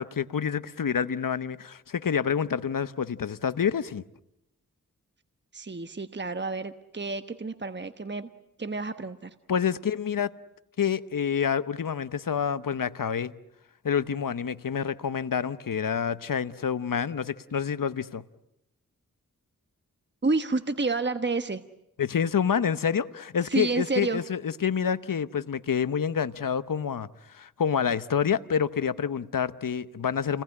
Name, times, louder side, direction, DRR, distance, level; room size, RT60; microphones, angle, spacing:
voice 1, 0.0-4.0 9.5-10.3 10.8-13.3 13.8-18.2 22.0-30.4, left 7 dB, 80° left, 0.9 m, -28 dB
voice 2, 5.5-8.3 8.6-9.3 20.2-21.6 23.4-24.2, right 3 dB, 35° right, 1.2 m, -29 dB
29.5 x 20.0 x 9.8 m
cardioid pair, 45°, 32 cm